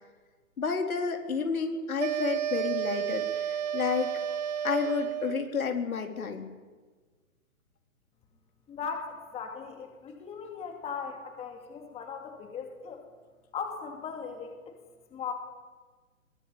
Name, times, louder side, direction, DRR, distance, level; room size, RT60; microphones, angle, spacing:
voice 1, 0.6-4.1 4.6-6.5, left 5 dB, 80° left, 4 dB, 4.1 m, -30 dB
sound 1, 2.0-5.5, right 10 dB, 30° right, 0.6 m, -31 dB
voice 2, 8.7-13.0 13.5-14.7 15.1-15.3, left 6 dB, 15° left, 3 dB, 2.6 m, -38 dB
22.5 x 19.0 x 8.9 m, 1.4 s
hypercardioid pair, 150°, 42 cm